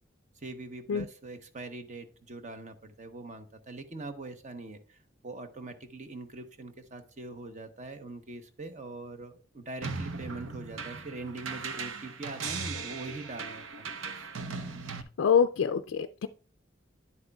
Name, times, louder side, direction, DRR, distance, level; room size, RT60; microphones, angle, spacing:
voice 1, 0.4-14.2, right 2 dB, 40° right, 8 dB, 0.9 m, -43 dB
sound 1, 9.8-15.0, right 4 dB, 85° right, 0.8 m, -38 dB
voice 2, 15.2-16.3, left 7 dB, 75° left, 8 dB, 0.4 m, -25 dB
10.0 x 8.0 x 2.3 m, 0.39 s
head